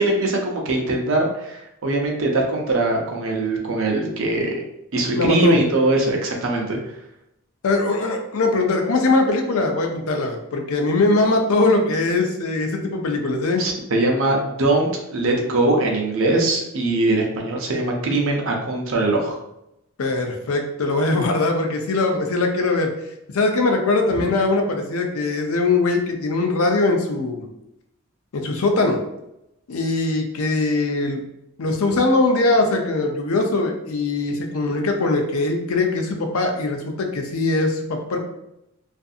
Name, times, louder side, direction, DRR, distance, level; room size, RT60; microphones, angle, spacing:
voice 1, 0.0-4.6 4.9-6.8 13.6-19.4 24.2-24.3, right 2 dB, 70° right, 1 dB, 0.6 m, -21 dB
voice 2, 5.2-5.6 7.6-13.6 20.0-22.9 23.3-27.5 28.3-29.0 29.7-31.2 31.6-38.2, left 2 dB, 80° left, 3 dB, 0.5 m, -21 dB
2.6 x 2.5 x 2.4 m, 0.85 s
head